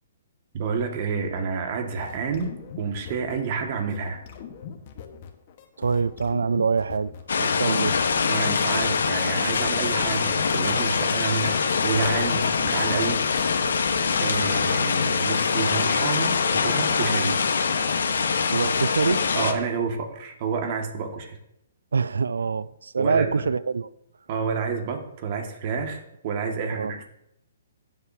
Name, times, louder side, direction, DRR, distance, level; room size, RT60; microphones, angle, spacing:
voice 1, 0.5-4.2 7.7-7.8 8.3-13.2 14.2-17.4 19.3-21.4 23.0-23.5 24.3-27.1, right 5 dB, 45° right, 1.9 m, -29 dB
sound 1, 2.0-3.6 3.9-14.8, left 7 dB, 45° left, 1.4 m, -42 dB
voice 2, 5.8-7.1 7.4-7.9 18.5-19.2 21.9-23.9 26.7-26.9, right 5 dB, 85° right, 0.4 m, -25 dB
sound 2, 7.3-19.5, left 5 dB, 80° left, 1.2 m, -24 dB
15.0 x 7.6 x 2.8 m
hypercardioid pair, 140°, 0 cm